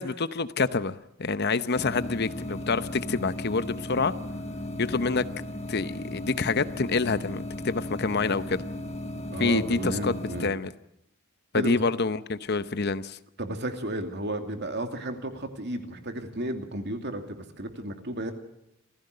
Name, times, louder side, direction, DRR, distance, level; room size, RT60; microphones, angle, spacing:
voice 1, 0.0-4.1 4.8-5.2 5.7-8.6 9.4-10.7 11.5-13.2, left 4 dB, 50° left, 13 dB, 0.8 m, -27 dB
sound 1, 1.4-10.5, left 1 dB, 30° left, 1.3 m, -36 dB
voice 2, 9.3-10.5 11.5-11.8 13.4-18.3, right 1 dB, 50° right, 5 dB, 2.7 m, -33 dB
27.0 x 16.0 x 6.7 m, 0.84 s
head